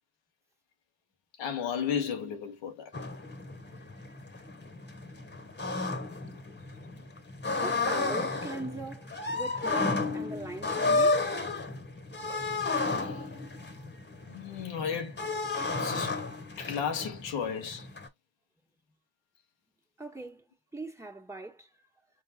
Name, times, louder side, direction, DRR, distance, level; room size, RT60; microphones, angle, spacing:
voice 1, 1.4-2.9 12.9-13.2 14.2-15.2 15.8-16.2 16.6-17.9, left 7 dB, 85° left, 1.1 m, -34 dB
sound 1, 2.9-18.1, left 3 dB, 25° left, 1.4 m, -32 dB
voice 2, 7.6-11.2 20.0-20.4 20.7-21.7, right 2 dB, 5° right, 1.6 m, -40 dB
4.6 x 4.0 x 2.8 m
supercardioid pair, 45°, 42 cm